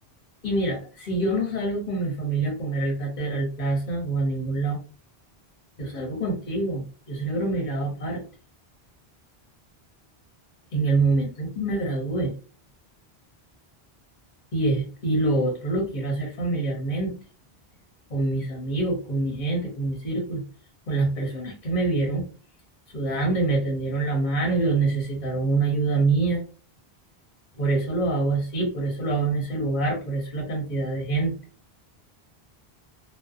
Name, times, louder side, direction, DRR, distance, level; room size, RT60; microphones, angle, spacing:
voice 1, 0.4-4.8 5.8-8.2 10.7-12.3 14.5-17.1 18.1-20.4 20.9-22.2 22.9-26.4 27.6-31.3, right 2 dB, 50° left, 0 dB, 0.7 m, -25 dB
2.5 x 2.0 x 2.3 m, 0.36 s
omnidirectional pair, 1.1 m